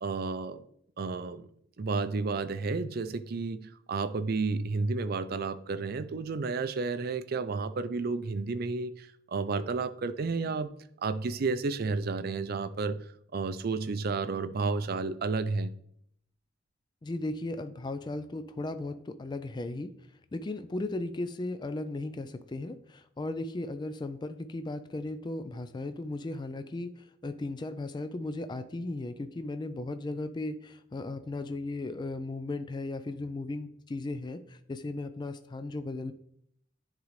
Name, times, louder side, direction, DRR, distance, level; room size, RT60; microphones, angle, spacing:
voice 1, 0.0-0.6 1.0-1.5 1.8-10.7 11.0-13.0 13.3-15.7, right 4 dB, 50° right, 12 dB, 0.4 m, -31 dB
voice 2, 17.0-19.9 20.3-36.1, left 2 dB, 25° left, 10 dB, 0.3 m, -36 dB
10.0 x 3.8 x 3.2 m, 0.69 s
head